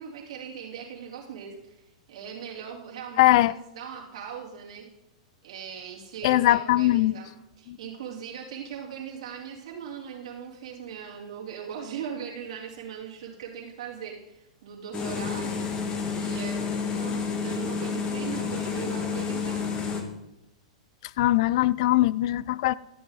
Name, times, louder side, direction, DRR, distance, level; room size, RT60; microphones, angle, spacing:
voice 1, 0.0-1.8 2.1-4.9 5.4-15.6 16.1-19.7, right 7 dB, 65° right, 2.7 m, -39 dB
voice 2, 3.2-3.5 6.2-7.2 7.7-7.8 21.2-22.7, left 16 dB, 55° left, 0.3 m, -21 dB
sound 1, 14.9-20.0, left 5 dB, 30° left, 1.5 m, -30 dB
12.5 x 7.8 x 4.0 m
hypercardioid pair, 115°, 4 cm